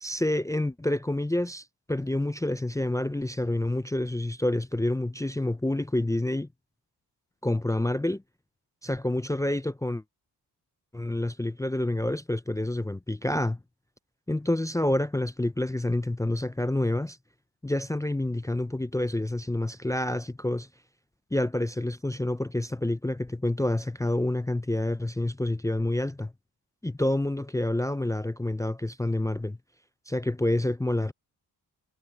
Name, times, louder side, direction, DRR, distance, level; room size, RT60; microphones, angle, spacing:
voice 1, 0.0-6.5 7.4-8.2 8.8-10.0 10.9-13.6 14.3-17.2 17.6-20.7 21.3-26.3 26.8-29.6 30.1-31.1, left 1 dB, 10° left, 0.5 m, -28 dB
cardioid pair, 70°, 40 cm